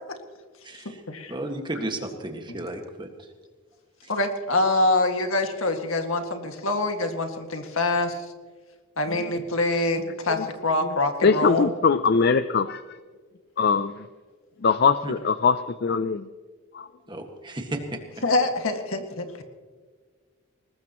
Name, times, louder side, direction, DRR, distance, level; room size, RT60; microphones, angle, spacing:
voice 1, 0.6-1.0 1.3-3.3 4.0-4.1 15.0-15.1 17.1-18.0, right 1 dB, 20° right, 4 dB, 1.7 m, -33 dB
voice 2, 4.1-8.3 9.0-11.7 18.2-19.4, left 2 dB, 70° left, 5 dB, 2.0 m, -25 dB
voice 3, 11.2-12.8 13.6-14.0 14.6-16.3 16.7-16.9, left 5 dB, 45° left, 12 dB, 0.4 m, -22 dB
20.5 x 19.5 x 3.0 m, 1.5 s
head